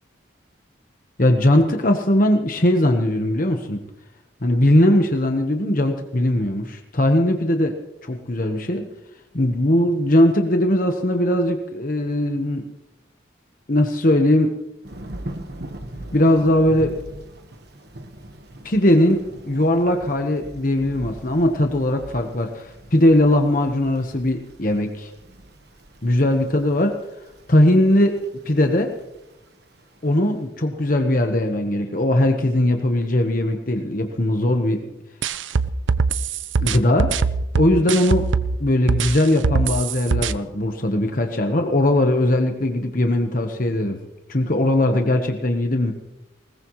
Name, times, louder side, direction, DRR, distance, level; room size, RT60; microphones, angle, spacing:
voice 1, 1.2-3.8 4.4-7.7 8.0-8.9 9.3-12.6 13.7-14.5 16.1-16.9 18.6-25.1 26.0-27.0 27.5-28.2 28.4-28.9 30.0-34.9 36.6-37.1 37.6-38.3 38.6-44.0 44.3-45.9, left 1 dB, 45° left, 4 dB, 1.2 m, -19 dB
Thunder / Rain, 14.8-30.4, right 1 dB, 55° right, 1.4 m, -41 dB
sound 1, 35.2-38.6 38.9-40.3, right 4 dB, 80° right, 0.7 m, -21 dB
21.0 x 19.5 x 3.2 m, 0.94 s
head